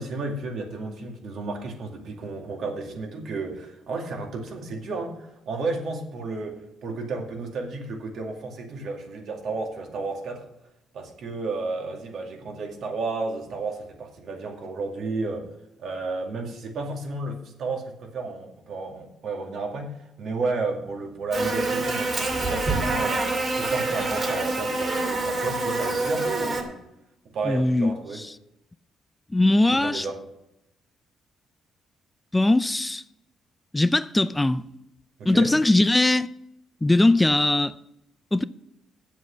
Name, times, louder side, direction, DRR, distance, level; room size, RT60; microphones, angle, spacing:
voice 1, 0.0-10.4 10.9-15.5 15.8-23.2 23.6-26.8 27.3-28.2 29.7-30.2 35.2-35.5, right 3 dB, 65° right, 2.2 m, -32 dB
Buzz, 21.3-26.6, right 2 dB, 40° right, 2.3 m, -26 dB
voice 2, 27.4-28.3 29.3-30.1 32.3-33.0 33.7-34.7 35.3-36.3 36.8-37.7 38.3-38.4, left 2 dB, 15° left, 0.3 m, -20 dB
8.1 x 7.4 x 7.4 m
cardioid pair, 90°, 0 cm